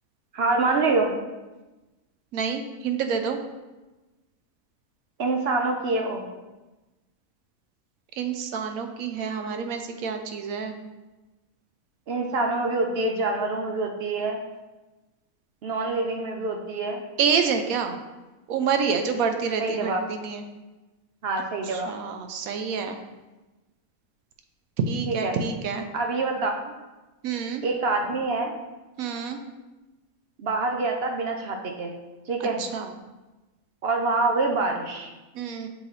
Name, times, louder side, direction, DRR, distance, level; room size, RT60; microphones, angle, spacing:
voice 1, 0.3-1.1 5.2-6.2 12.1-14.4 15.6-17.0 19.6-20.0 21.2-21.9 25.1-25.4 25.9-26.7 27.6-28.5 30.4-32.0 32.3-32.6 33.8-35.1, right 3 dB, 55° right, 3 dB, 0.7 m, -26 dB
voice 2, 2.3-3.4 8.1-10.8 17.2-18.0 18.5-20.4 21.6-23.0 24.8-25.9 26.4-26.5 27.2-27.6 29.0-29.4 32.6-32.9 35.3-35.7, right 6 dB, 80° right, 6 dB, 1.1 m, -28 dB
7.3 x 3.3 x 3.9 m, 1.1 s
omnidirectional pair, 1.5 m